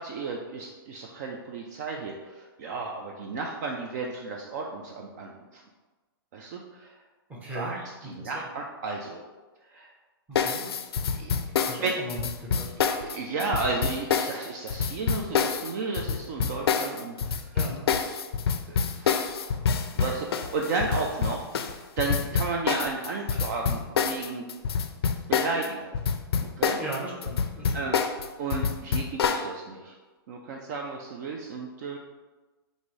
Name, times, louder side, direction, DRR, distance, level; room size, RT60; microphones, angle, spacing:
voice 1, 0.0-5.6 6.3-7.0 7.5-9.2 9.7-9.9 11.1-11.3 11.8-11.9 12.8-17.5 18.7-19.5 20.0-24.4 25.3-25.9 26.4-26.8 27.7-28.0 28.4-30.0 30.3-32.0, right 3 dB, 45° right, 1 dB, 0.4 m, -33 dB
voice 2, 7.3-7.7 8.0-8.5 10.3-10.7 11.6-12.7 17.5-17.8 22.1-22.4 26.8-27.9, right 2 dB, 10° right, -4 dB, 0.9 m, -38 dB
sound 1, 10.3-25.7 25.9-29.5, left 6 dB, 80° left, 0.4 m, -27 dB
5.1 x 2.6 x 3.1 m, 1.2 s
hypercardioid pair, 145°, 13 cm